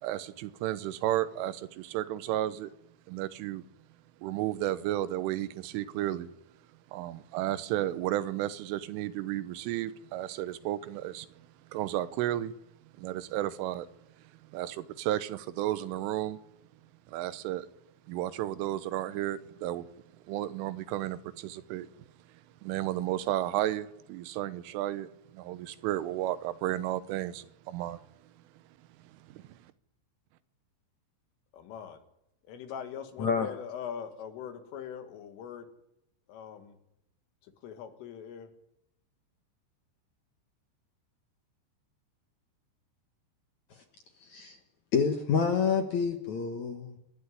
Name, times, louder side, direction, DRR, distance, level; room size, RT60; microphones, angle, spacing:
voice 1, 0.0-2.7 3.1-3.7 4.2-6.3 6.9-11.3 11.7-12.5 13.0-13.9 14.4-16.4 17.1-17.7 18.1-19.9 20.3-21.9 22.6-28.0 29.0-29.5, right 13 dB, 85° right, 3.5 m, -33 dB
voice 2, 31.5-32.0 32.4-35.7 36.3-36.8 37.4-38.5, left 8 dB, 85° left, 4.5 m, -42 dB
voice 3, 44.2-44.6 44.9-47.0, left 6 dB, 60° left, 1.9 m, -28 dB
27.5 x 11.0 x 9.9 m
omnidirectional pair, 5.6 m